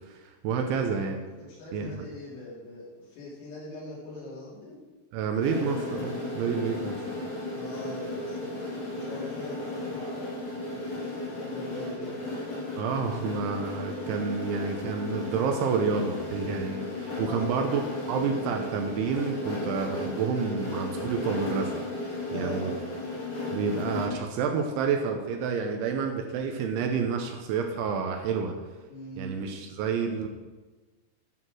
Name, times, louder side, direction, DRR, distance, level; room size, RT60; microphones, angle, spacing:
voice 1, 0.4-1.2 1.7-2.0 5.1-7.0 12.8-17.8 18.1-21.7 22.3-22.7 23.5-28.5 29.2-30.3, right 5 dB, 80° right, 4 dB, 2.9 m, -29 dB
voice 2, 1.4-4.8 7.5-8.6 8.9-10.4 10.7-12.2 17.2-17.5 22.3-22.7 28.9-29.5, left 2 dB, 80° left, -6 dB, 5.9 m, -42 dB
sound 1, 5.4-24.1, left 2 dB, 50° left, 5.1 m, -35 dB
12.0 x 5.8 x 6.3 m, 1.3 s
omnidirectional pair, 5.9 m